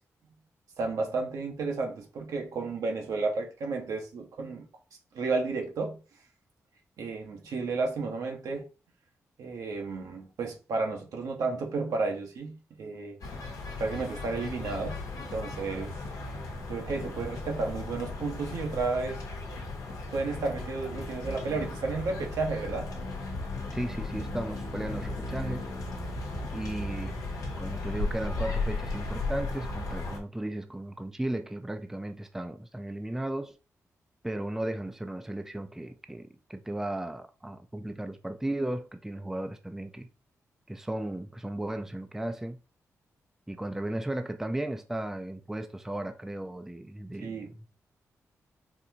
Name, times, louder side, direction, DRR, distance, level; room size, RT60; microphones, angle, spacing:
voice 1, 0.8-4.6 5.1-6.0 7.0-8.6 9.4-13.2 13.8-15.9 16.7-19.2 20.1-22.9 47.2-47.5, right 3 dB, 85° right, 1.0 m, -32 dB
sound 1, 13.2-30.2, left 2 dB, 80° left, 0.9 m, -36 dB
voice 2, 23.7-25.7 26.5-27.2 27.6-33.6 34.2-40.1 40.7-42.6 43.5-47.7, right 1 dB, 5° right, 0.4 m, -35 dB
4.0 x 2.6 x 2.8 m
cardioid pair, 75°, 6 cm